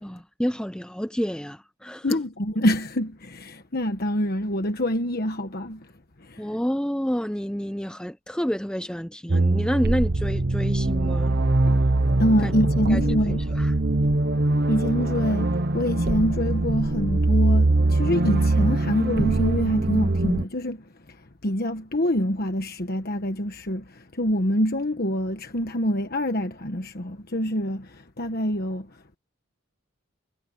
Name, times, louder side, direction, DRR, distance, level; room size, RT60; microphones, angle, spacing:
voice 1, 0.0-2.2 6.4-11.4 12.4-12.5 12.9-13.0 13.3-13.7 14.0-14.1, equal, 5° left, 0.9 m, -29 dB
voice 2, 2.0-5.9 6.2-6.4 11.6-11.8 12.2-13.4 14.7-20.8 21.1-21.2 21.4-28.9, equal, 45° left, 1.3 m, -26 dB
sound 1, 9.3-20.4, right 2 dB, 50° right, 1.1 m, -22 dB
head